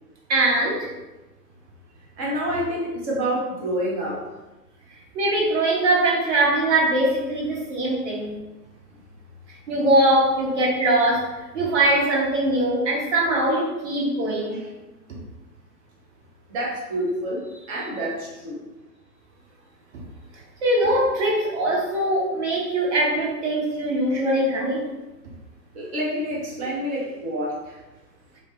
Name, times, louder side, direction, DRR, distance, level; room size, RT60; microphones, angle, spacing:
voice 1, 0.3-0.9 5.1-8.3 9.7-14.6 20.6-24.8, right 1 dB, 45° right, -3 dB, 1.1 m, -22 dB
voice 2, 2.2-4.2 14.5-14.7 16.5-18.6 25.7-27.8, equal, 20° right, -4 dB, 0.7 m, -28 dB
5.0 x 2.0 x 2.5 m, 1.1 s
figure-of-eight pair, 110°, 48 cm